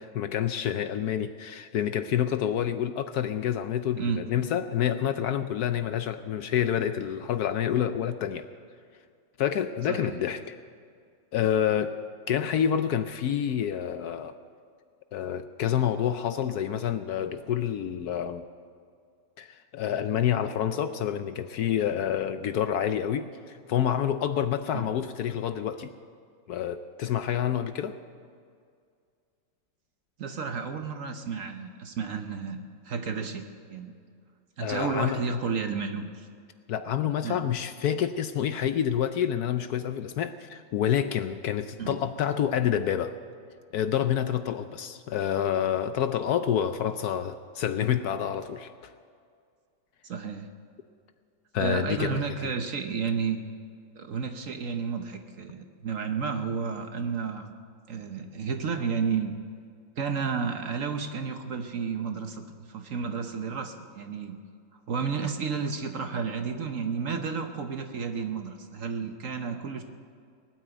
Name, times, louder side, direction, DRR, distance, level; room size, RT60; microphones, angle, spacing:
voice 1, 0.1-8.5 9.4-10.5 11.3-11.9 12.3-14.4 15.1-18.4 19.4-25.9 26.5-28.0 34.6-35.2 36.7-43.1 43.7-48.9 51.5-52.5, left 9 dB, 70° left, 10 dB, 0.9 m, -28 dB
voice 2, 9.9-10.2 24.7-24.9 30.2-34.0 34.6-36.3 37.2-37.4 41.8-42.0 50.0-50.5 51.6-53.5 54.0-57.5 57.9-59.3 60.0-64.4 64.9-69.8, right 5 dB, 50° right, 6 dB, 1.1 m, -32 dB
19.0 x 9.4 x 8.0 m, 2.2 s
omnidirectional pair, 2.1 m